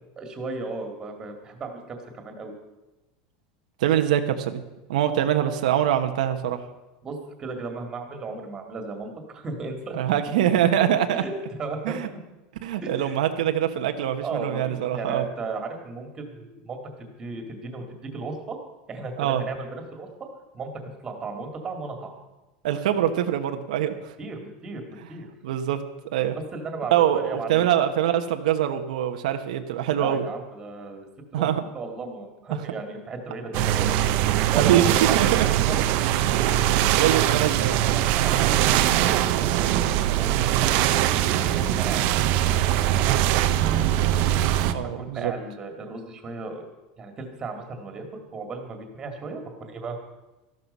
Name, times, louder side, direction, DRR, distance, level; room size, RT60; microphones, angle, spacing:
voice 1, 0.2-2.5 7.0-10.0 11.1-11.3 11.6-12.2 12.8-13.2 14.2-16.8 17.2-18.6 18.9-20.1 20.5-20.7 21.0-22.1 24.2-24.8 25.1-25.3 26.5-27.7 29.9-31.1 31.3-35.4 35.7-35.9 36.6-36.7 37.8-39.8 40.2-41.0 41.4-44.2 44.8-46.7 47.0-48.0 48.3-50.0, right 4 dB, 15° right, 4 dB, 2.0 m, -35 dB
voice 2, 3.8-4.6 4.9-6.6 9.9-11.2 11.8-12.1 12.6-15.3 19.2-19.4 22.6-24.1 25.4-25.8 26.1-26.4 26.9-30.3 31.3-31.6 34.6-35.4 36.7-37.7 44.7-45.3, right 10 dB, 90° right, 6 dB, 1.2 m, -24 dB
sound 1, 33.5-44.7, right 12 dB, 45° right, 0.8 m, -22 dB
13.5 x 12.0 x 5.5 m, 1.1 s
supercardioid pair, 170°, 4 cm